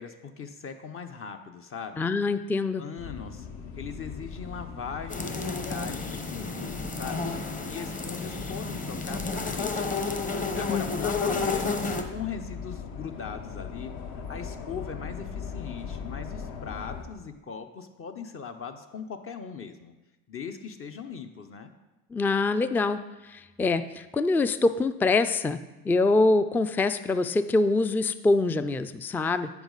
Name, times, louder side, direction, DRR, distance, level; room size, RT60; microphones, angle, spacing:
voice 1, 0.0-2.1 2.8-3.5 3.8-7.3 7.7-10.0 10.5-19.9 20.3-21.7, left 6 dB, 40° left, 7 dB, 0.7 m, -40 dB
voice 2, 2.0-2.8 10.7-11.1 22.1-23.0 23.3-25.6 25.9-29.5, left 3 dB, 5° left, 12 dB, 0.3 m, -24 dB
sound 1, 3.0-17.0, left 6 dB, 60° left, 1.1 m, -40 dB
sound 2, 5.1-12.0, left 4 dB, 25° left, 1.0 m, -31 dB
8.2 x 6.9 x 3.9 m, 1.1 s
supercardioid pair, 80°, 33 cm